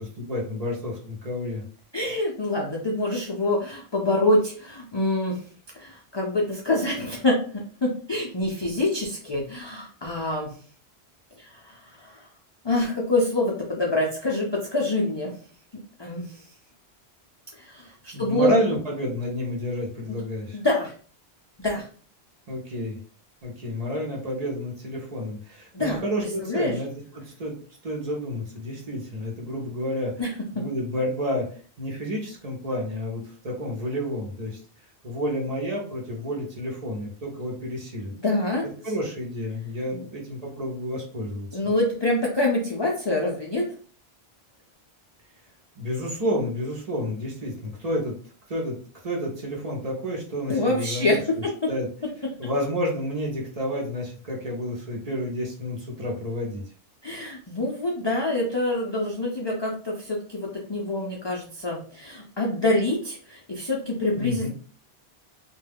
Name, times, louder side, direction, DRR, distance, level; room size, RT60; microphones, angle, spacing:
voice 1, 0.2-1.6 18.1-20.6 22.5-23.0 23.4-27.5 27.8-30.1 30.5-31.5 31.8-34.6 35.0-38.1 38.8-41.6 45.8-48.2 48.5-48.8 49.0-51.2 51.7-51.9 52.4-56.6 64.1-64.5, equal, 40° right, -2 dB, 0.7 m, -30 dB
voice 2, 1.9-5.4 5.7-10.5 11.4-12.3 12.6-15.3 16.0-16.4 17.6-18.6 20.5-20.9 21.6-21.9 25.7-26.7 30.2-30.3 30.6-30.7 38.2-38.7 39.9-40.1 41.5-43.7 50.5-51.5 57.0-64.5, left 2 dB, 45° left, -2 dB, 0.3 m, -26 dB
2.2 x 2.2 x 3.4 m, 0.43 s
omnidirectional pair, 1.1 m